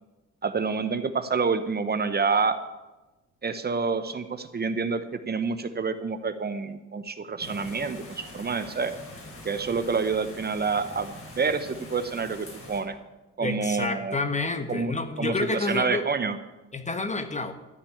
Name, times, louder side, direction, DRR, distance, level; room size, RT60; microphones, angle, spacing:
voice 1, 0.4-2.6 3.4-8.9 9.4-13.0 13.4-14.2 14.7-16.4, right 5 dB, 30° right, 10 dB, 0.9 m, -28 dB
sound 1, 7.4-12.8, left 1 dB, 45° left, 4.4 m, -44 dB
voice 2, 13.4-16.1 16.7-17.5, left 3 dB, 25° left, 9 dB, 1.3 m, -29 dB
13.5 x 5.9 x 9.7 m, 1.1 s
cardioid pair, 90°, 30 cm